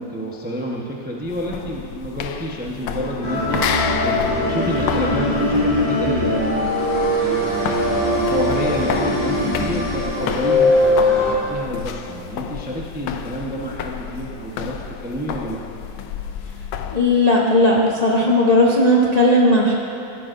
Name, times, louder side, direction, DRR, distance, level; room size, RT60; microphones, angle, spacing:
voice 1, 0.0-15.8, equal, 10° right, -2 dB, 0.5 m, -29 dB
sound 1, 1.2-17.1, left 8 dB, 85° left, 1.4 m, -31 dB
sound 2, 3.2-11.3, left 1 dB, 20° left, 2.5 m, -20 dB
voice 2, 16.9-19.7, left 1 dB, 35° left, -3 dB, 0.6 m, -16 dB
15.5 x 12.5 x 2.6 m, 2.9 s
omnidirectional pair, 2.1 m